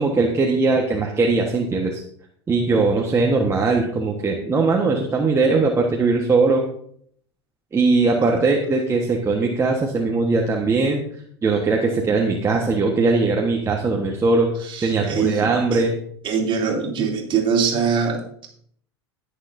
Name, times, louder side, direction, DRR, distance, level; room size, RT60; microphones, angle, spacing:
voice 1, 0.0-2.0 2.5-6.6 7.7-15.9, right 3 dB, 20° right, 0 dB, 1.3 m, -20 dB
voice 2, 14.6-15.8 16.2-18.5, right 6 dB, 35° right, 1 dB, 2.8 m, -23 dB
19.0 x 6.6 x 2.7 m, 0.64 s
figure-of-eight pair, 85°, 14 cm